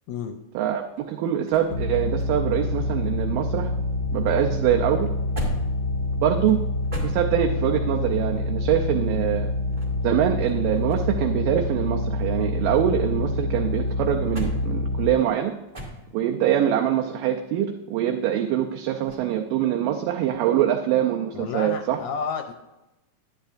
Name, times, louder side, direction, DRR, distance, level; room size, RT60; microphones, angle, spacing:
voice 1, 0.1-0.4 21.3-22.5, left 6 dB, 80° left, 5 dB, 1.8 m, -31 dB
sound 1, 0.7-3.8 4.1-7.8 9.5-11.3 11.6-13.3 13.8-16.4 19.0-19.4, right 1 dB, 20° right, 1.3 m, -39 dB
voice 2, 1.1-3.7 4.1-5.1 6.2-6.6 7.0-9.5 10.0-15.5 16.1-22.0, right 10 dB, 80° right, 2 dB, 2.3 m, -24 dB
sound 2, 1.7-15.1, left 2 dB, 55° left, 1.2 m, -27 dB
10.5 x 10.0 x 2.5 m, 1.0 s
omnidirectional pair, 3.9 m